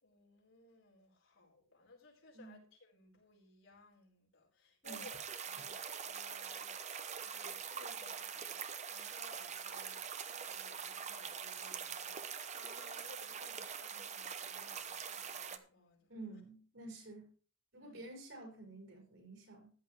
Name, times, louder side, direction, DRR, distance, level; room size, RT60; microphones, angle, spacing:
voice 1, 0.0-6.8 7.2-16.1 17.8-18.0, left 2 dB, 80° left, 4.4 m, -61 dB
sound 1, 4.8-15.6, right 7 dB, 35° right, 0.8 m, -44 dB
voice 2, 16.1-17.3 17.7-19.7, right 2 dB, 70° right, 6.1 m, -50 dB
14.0 x 10.5 x 3.3 m
head